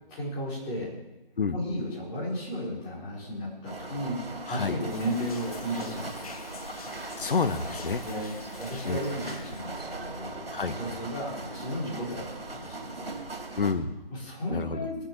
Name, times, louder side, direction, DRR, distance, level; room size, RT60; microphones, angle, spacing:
voice 1, 0.1-0.9 1.5-6.3 8.0-13.2 14.1-15.0, equal, 15° left, -6 dB, 4.4 m, -34 dB
sound 1, 3.7-13.7, right 3 dB, 90° right, 3.1 m, -39 dB
sound 2, 4.9-9.9, left 5 dB, 40° left, 1.0 m, -46 dB
voice 2, 7.2-8.0 8.8-9.0 10.5-10.7 13.6-13.9 14.5-14.8, left 5 dB, 65° left, 11 dB, 1.3 m, -28 dB
20.5 x 7.1 x 7.5 m, 0.97 s
figure-of-eight pair, 155°, 29 cm